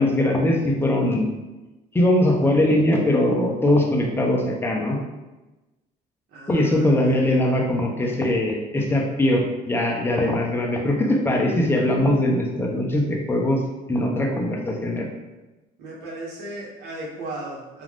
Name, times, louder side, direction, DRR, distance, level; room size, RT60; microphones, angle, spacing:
voice 1, 0.0-1.3 1.9-5.0 6.5-13.6 13.9-15.1, left 1 dB, 15° left, -1 dB, 0.5 m, -21 dB
voice 2, 6.3-7.3 15.8-17.8, right 2 dB, 75° right, -4 dB, 1.0 m, -36 dB
2.5 x 2.3 x 3.4 m, 1.1 s
cardioid pair, 110°, 17 cm